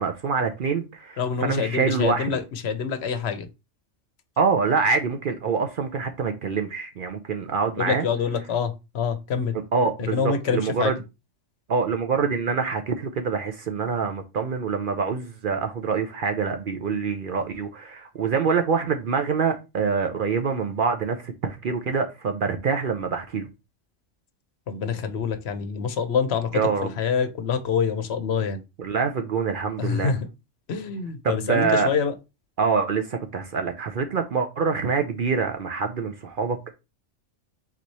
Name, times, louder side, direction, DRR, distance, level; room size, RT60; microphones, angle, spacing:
voice 1, 0.0-2.3 4.4-8.1 9.7-10.9 11.7-23.5 26.5-26.9 28.8-30.1 31.2-31.9 32.6-36.7, right 5 dB, 55° right, 0.6 m, -25 dB
voice 2, 1.2-3.5 7.8-9.6 10.0-11.0 24.7-28.6 29.8-30.3 30.7-32.1, left 6 dB, 60° left, 0.9 m, -26 dB
4.2 x 3.1 x 4.0 m
omnidirectional pair, 1.3 m